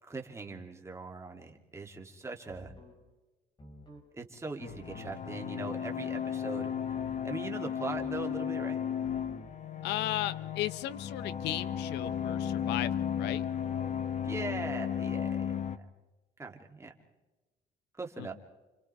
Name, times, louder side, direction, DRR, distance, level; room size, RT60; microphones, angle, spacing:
voice 1, 0.0-2.7 4.1-6.8 7.2-8.8 14.2-15.6 16.4-16.9 18.0-18.3, right 3 dB, 15° right, 2 dB, 2.9 m, -40 dB
sound 1, 2.5-3.0 3.6-4.1 4.7-5.2 6.8-7.4 7.9-8.5 9.0-9.5, left 1 dB, 30° left, 5.5 m, -51 dB
sound 2, 4.6-15.8, left 8 dB, 45° left, 1.3 m, -34 dB
voice 2, 9.8-13.4 18.2-18.3, left 14 dB, 85° left, 17 dB, 0.8 m, -35 dB
30.0 x 27.0 x 3.5 m, 1.1 s
cardioid pair, 110°, 17 cm